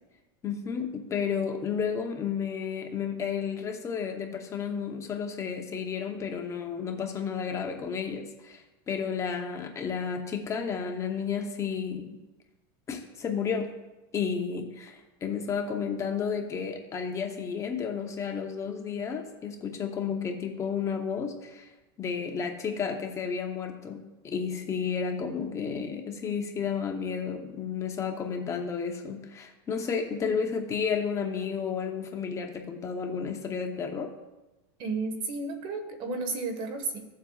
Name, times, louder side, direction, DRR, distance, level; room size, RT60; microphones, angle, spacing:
voice 1, 0.4-12.1 12.9-13.7 14.1-21.7 22.0-34.1, left 6 dB, 25° left, 4 dB, 0.9 m, -32 dB
voice 2, 34.8-37.0, right 3 dB, 40° right, 6 dB, 1.5 m, -32 dB
15.5 x 7.4 x 2.4 m, 1.1 s
supercardioid pair, 140°, 13 cm